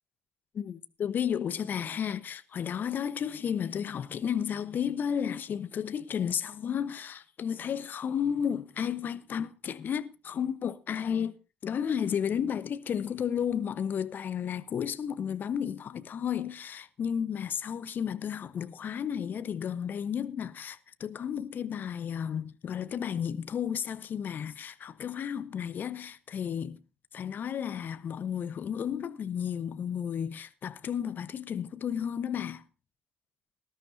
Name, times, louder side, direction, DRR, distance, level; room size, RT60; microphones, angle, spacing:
voice 1, 0.5-11.4 11.6-26.8 27.1-32.6, left 8 dB, 45° left, 1.0 m, -33 dB
19.0 x 12.5 x 2.7 m
hypercardioid pair, 50°, 4 cm